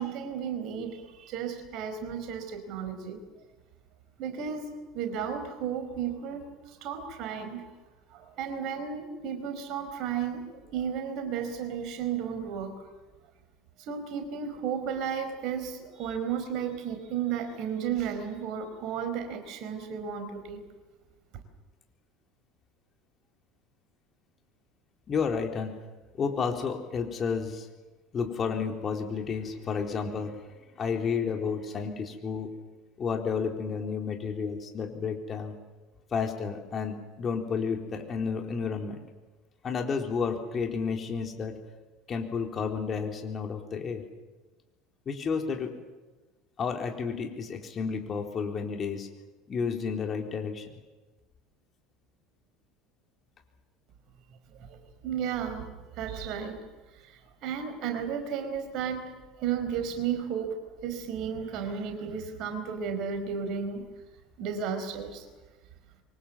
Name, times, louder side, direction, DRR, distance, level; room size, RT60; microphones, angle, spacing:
voice 1, 0.0-3.2 4.2-7.6 8.1-12.7 13.9-20.6 54.5-56.6 57.4-59.0 59.4-60.6 60.8-63.8 64.4-65.2, right 7 dB, 55° right, 7 dB, 4.6 m, -33 dB
voice 2, 25.1-25.7 26.2-27.7 28.1-30.4 30.8-32.5 33.0-35.6 36.1-39.0 39.6-41.6 42.1-44.0 45.1-45.7 46.6-49.1 49.5-50.7, left 5 dB, 35° left, 3 dB, 4.0 m, -31 dB
26.0 x 24.0 x 7.5 m, 1.2 s
figure-of-eight pair, 70°, 0 cm